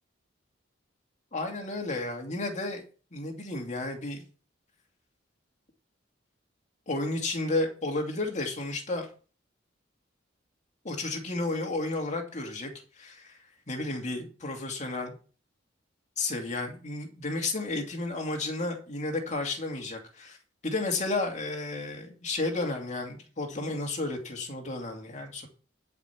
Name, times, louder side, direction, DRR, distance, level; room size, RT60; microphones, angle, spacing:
voice 1, 1.3-2.8 3.1-4.2 6.9-9.1 10.8-12.7 13.0-13.4 13.7-15.1 16.2-20.4 20.6-25.5, left 2 dB, 40° left, 2 dB, 2.5 m, -32 dB
11.5 x 5.4 x 7.2 m, 0.39 s
head